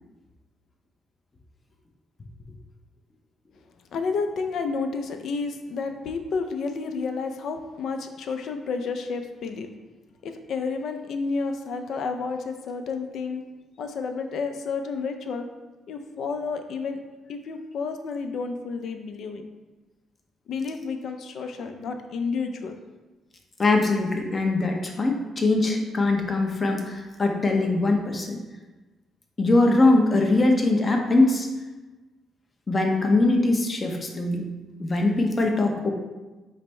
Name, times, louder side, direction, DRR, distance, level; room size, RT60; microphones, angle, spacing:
voice 1, 3.9-9.7 10.2-13.4 13.8-15.5 15.9-17.0 17.3-19.4 20.5-22.8, left 4 dB, 70° left, 6 dB, 0.4 m, -30 dB
voice 2, 23.6-28.4 29.4-31.5 32.7-34.4 34.8-35.9, left 2 dB, 30° left, 2 dB, 0.7 m, -22 dB
5.0 x 2.1 x 4.3 m, 1.2 s
cardioid pair, 90°, 0 cm